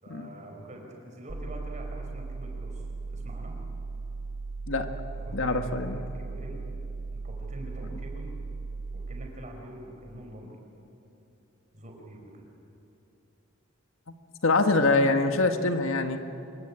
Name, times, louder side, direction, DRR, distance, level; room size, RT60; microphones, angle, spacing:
voice 1, 0.0-3.6 5.1-6.6 7.1-8.3 8.9-10.6 11.7-12.5, right 1 dB, 35° right, 1 dB, 5.2 m, -45 dB
sound 1, 1.3-9.3, right 3 dB, 65° right, 1.1 m, -37 dB
voice 2, 5.3-6.0 14.4-16.2, left 3 dB, 75° left, 7 dB, 1.5 m, -24 dB
26.0 x 22.5 x 8.9 m, 3.0 s
head